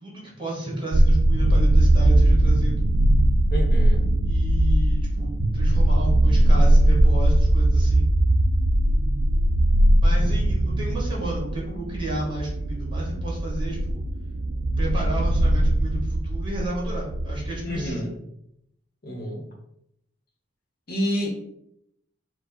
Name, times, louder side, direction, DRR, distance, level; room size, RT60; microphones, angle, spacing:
voice 1, 0.0-2.9 4.2-8.1 10.0-14.0 14.8-18.0, right 1 dB, 25° right, -4 dB, 1.5 m, -32 dB
sound 1, 0.9-17.9, right 1 dB, 70° right, 0.4 m, -20 dB
voice 2, 3.5-4.0 5.4-5.5 17.6-18.1 19.0-19.4 20.9-21.3, equal, 50° left, 0 dB, 1.1 m, -28 dB
4.7 x 2.3 x 4.3 m, 0.77 s
head